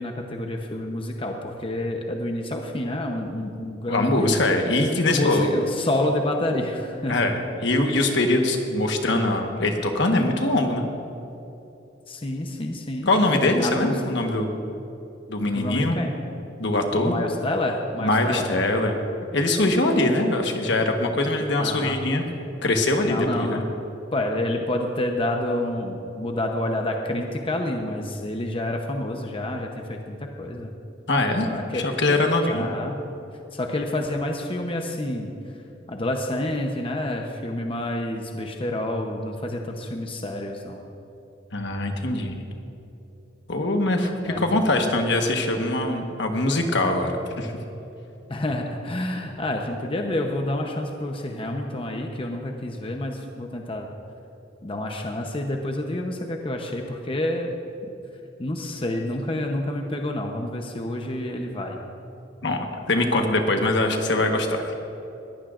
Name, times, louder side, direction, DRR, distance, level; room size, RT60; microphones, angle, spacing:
voice 1, 0.0-4.4 5.1-7.2 12.1-13.1 13.6-14.0 15.5-16.2 16.9-18.5 21.6-22.1 23.0-23.7 24.1-30.7 31.4-31.9 32.5-33.0 33.5-35.3 35.9-40.8 44.3-44.5 48.3-53.9 54.6-57.5 58.4-61.8, left 1 dB, 30° left, 2 dB, 0.8 m, -28 dB
voice 2, 3.9-5.5 7.1-10.9 13.1-14.5 15.3-16.0 16.6-17.1 18.0-18.9 19.3-22.2 22.6-23.6 31.1-31.5 31.7-32.7 41.5-42.4 43.5-47.5 62.4-64.8, left 2 dB, 65° left, 4 dB, 1.3 m, -22 dB
20.5 x 15.0 x 2.5 m, 2.9 s
head